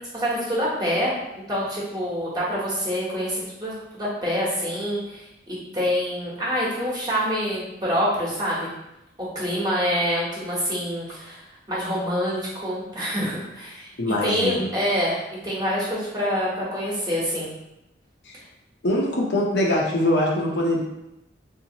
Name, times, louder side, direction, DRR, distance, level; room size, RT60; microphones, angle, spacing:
voice 1, 0.1-1.1 1.5-8.7 9.2-11.4 11.7-13.9 14.2-17.5, equal, 20° right, -6 dB, 1.0 m, -26 dB
voice 2, 14.0-14.7 18.3-18.4 18.8-20.8, left 1 dB, 65° left, -2 dB, 0.7 m, -23 dB
3.5 x 2.7 x 2.8 m, 0.90 s
head